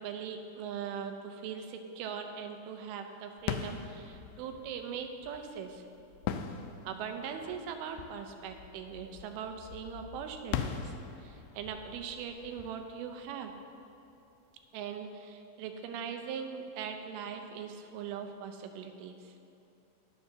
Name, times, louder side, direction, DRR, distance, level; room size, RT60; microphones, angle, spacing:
voice 1, 0.0-5.8 6.8-10.9 11.2-13.5 14.7-19.3, right 7 dB, 90° right, 5 dB, 2.7 m, -40 dB
sound 1, 3.4-14.0, left 8 dB, 80° left, 2.0 m, -42 dB
21.0 x 7.0 x 2.8 m, 2.9 s
omnidirectional pair, 4.4 m